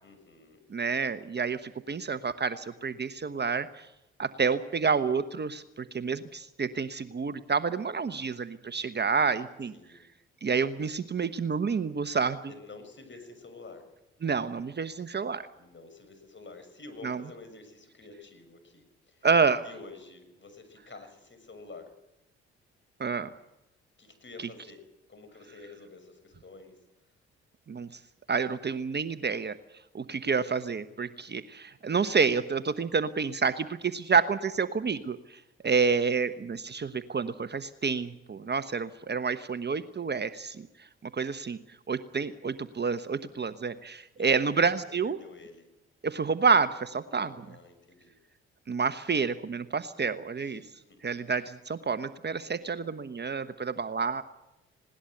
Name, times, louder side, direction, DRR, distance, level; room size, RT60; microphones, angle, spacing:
voice 1, 0.0-0.7 9.7-10.1 12.5-13.9 15.5-19.3 19.6-21.9 24.0-24.8 25.1-26.8 44.2-44.7 45.0-45.7 47.2-48.2 50.3-51.0 52.6-52.8, left 3 dB, 40° left, 8 dB, 6.7 m, -49 dB
voice 2, 0.7-3.9 4.2-9.7 10.4-12.4 14.2-15.4 17.0-17.2 19.2-19.6 23.0-23.3 27.7-27.9 28.3-29.6 29.9-35.2 35.6-40.6 41.1-41.6 41.9-45.2 46.0-47.3 48.7-50.6 51.0-54.2, right 5 dB, 35° right, 12 dB, 1.1 m, -28 dB
20.0 x 18.5 x 8.0 m, 0.91 s
hypercardioid pair, 50°, 30 cm